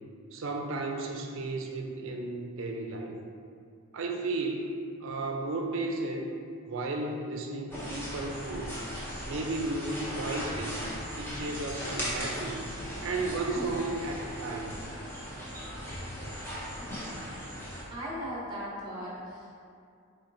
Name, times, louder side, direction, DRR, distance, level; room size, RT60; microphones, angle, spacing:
voice 1, 0.3-3.2 3.9-6.4 6.7-8.7 9.3-10.9 11.2-12.7 13.0-14.8, right 2 dB, 65° right, 2 dB, 0.5 m, -34 dB
sound 1, 7.7-17.8, equal, 10° left, 0.7 m, -38 dB
voice 2, 17.9-19.6, equal, 20° right, -6 dB, 1.0 m, -38 dB
4.3 x 3.9 x 2.6 m, 2.4 s
head